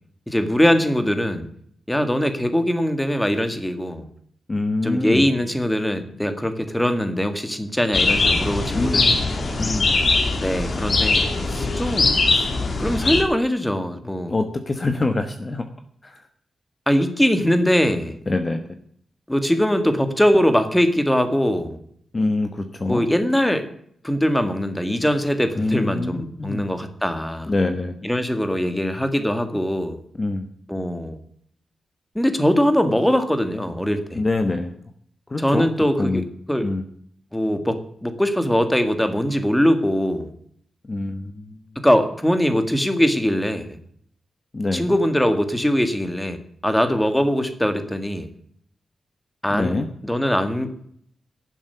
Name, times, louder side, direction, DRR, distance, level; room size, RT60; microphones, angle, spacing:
voice 1, 0.3-1.5 1.9-4.1 4.8-9.6 10.4-12.5 12.8-14.3 16.9-18.2 19.3-21.8 22.9-23.6 24.0-27.5 28.0-30.0 30.7-31.2 32.2-34.2 35.4-36.7 37.3-40.3 41.8-43.8 44.7-48.3 49.4-49.8 50.0-50.8, equal, 5° left, 8 dB, 1.8 m, -22 dB
voice 2, 4.5-5.3 8.7-9.3 9.6-10.0 14.3-15.7 16.0-16.3 18.3-18.6 22.1-23.0 25.6-26.7 27.5-28.1 30.1-30.5 34.1-34.7 35.3-35.7 36.0-36.2 36.6-36.9 40.8-41.6 44.5-44.9 49.5-49.9, left 2 dB, 25° left, 7 dB, 1.2 m, -25 dB
sound 1, 7.9-13.2, left 3 dB, 45° left, 2.3 m, -21 dB
11.5 x 7.4 x 9.3 m, 0.65 s
wide cardioid pair, 115°, 0 cm